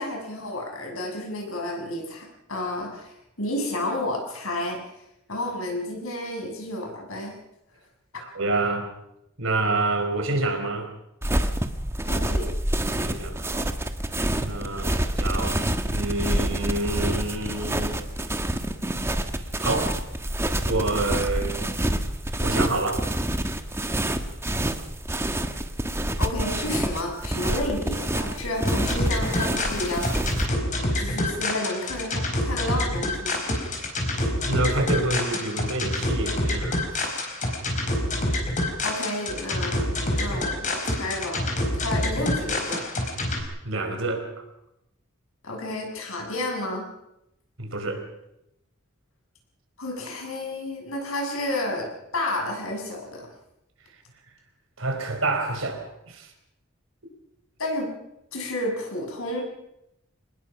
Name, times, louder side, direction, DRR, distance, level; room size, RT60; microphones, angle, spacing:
voice 1, 0.0-4.8 5.3-7.3 12.1-12.5 26.2-30.1 31.0-33.4 38.8-39.8 40.1-41.5 41.7-42.8 45.4-46.8 49.8-53.3 57.6-57.9 58.3-59.4, left 1 dB, 85° left, 2 dB, 6.9 m, -31 dB
voice 2, 8.2-8.9 9.4-10.9 12.9-13.7 14.4-15.6 15.9-18.0 19.6-20.0 20.7-21.6 22.4-23.1 34.2-37.1 43.6-44.3 47.6-48.0 54.8-56.3, right 2 dB, 70° right, 5 dB, 4.7 m, -28 dB
sound 1, 11.2-30.5, right 1 dB, 10° right, 1.4 m, -27 dB
sound 2, 28.6-43.4, left 1 dB, 35° left, 4.8 m, -27 dB
26.0 x 20.5 x 6.0 m, 0.83 s
head